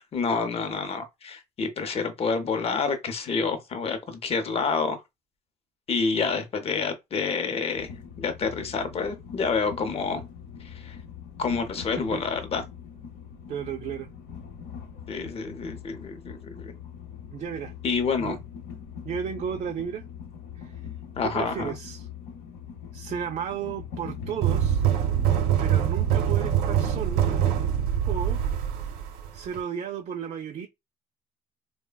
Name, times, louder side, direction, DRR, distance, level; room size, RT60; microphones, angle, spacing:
voice 1, 0.1-5.0 5.9-7.9 8.2-10.2 10.6-11.0 11.4-12.6 15.1-16.7 17.8-18.4 21.2-21.7, left 5 dB, 35° left, 0.6 m, -28 dB
Train, 7.7-27.5, left 7 dB, 80° left, 0.8 m, -42 dB
voice 2, 13.5-14.1 17.3-17.7 18.2-18.4 19.0-20.0 20.6-20.9 21.2-22.1 22.9-24.9 25.6-27.2 28.1-28.4 29.3-30.7, right 8 dB, 45° right, 0.4 m, -34 dB
sound 1, 24.4-29.6, right 10 dB, 75° right, 0.7 m, -24 dB
3.2 x 2.1 x 2.2 m
cardioid pair, 110°, 17 cm